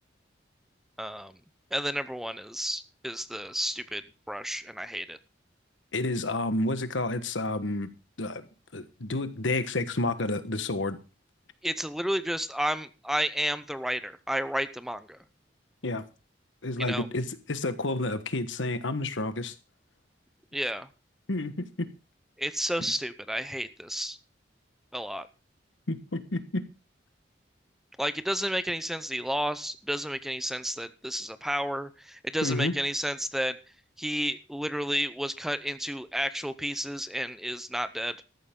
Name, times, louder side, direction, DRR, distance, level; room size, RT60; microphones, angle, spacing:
voice 1, 1.0-1.3 1.7-4.0 4.3-5.2 11.6-15.2 16.8-17.1 20.5-20.9 22.4-24.2 24.9-25.3 28.0-33.6 34.0-38.1, equal, ahead, 13 dB, 0.7 m, -31 dB
voice 2, 5.9-7.9 8.2-8.4 8.7-11.0 15.8-16.0 16.6-19.5 21.3-21.9 22.8-22.9 25.9-26.7 32.4-32.7, left 2 dB, 85° left, 11 dB, 1.3 m, -30 dB
13.5 x 11.5 x 3.8 m, 0.32 s
head